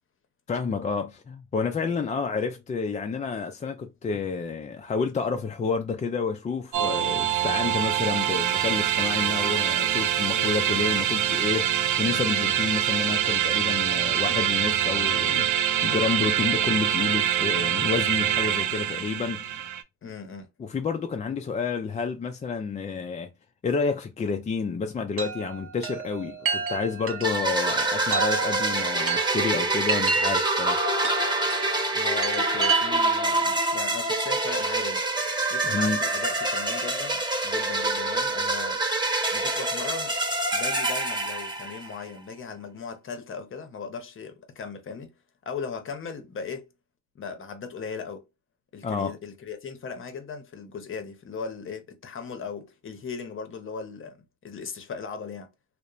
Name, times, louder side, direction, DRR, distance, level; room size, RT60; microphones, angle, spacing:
voice 1, 0.5-19.6 20.6-23.3 23.6-30.8 35.6-36.0 48.8-49.2, left 5 dB, 25° left, 0.3 m, -29 dB
sound 1, 6.7-19.8, right 11 dB, 75° right, 0.5 m, -25 dB
voice 2, 10.3-10.7 20.0-20.5 31.9-35.0 35.5-38.8 39.3-40.1 40.5-45.1 45.5-46.7 47.1-48.2 48.7-54.2 54.4-55.5, left 5 dB, 45° left, 0.7 m, -37 dB
Chime, 25.2-33.3, right 5 dB, 45° right, 0.8 m, -31 dB
sound 2, 27.2-42.0, right 2 dB, 15° right, 0.9 m, -26 dB
2.8 x 2.1 x 2.3 m
cardioid pair, 90°, 30 cm